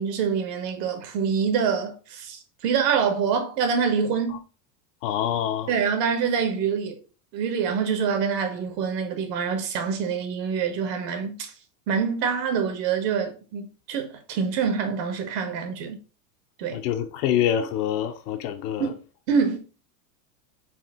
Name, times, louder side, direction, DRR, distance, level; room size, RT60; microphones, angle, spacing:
voice 1, 0.0-4.4 5.7-7.0 7.3-11.5 11.9-16.0 16.6-16.8 18.8-18.9 19.3-19.6, right 6 dB, 75° right, 1.2 m, -25 dB
voice 2, 5.0-5.7 16.7-18.9, left 10 dB, 70° left, 0.6 m, -26 dB
4.3 x 2.4 x 3.5 m
supercardioid pair, 125°, 49 cm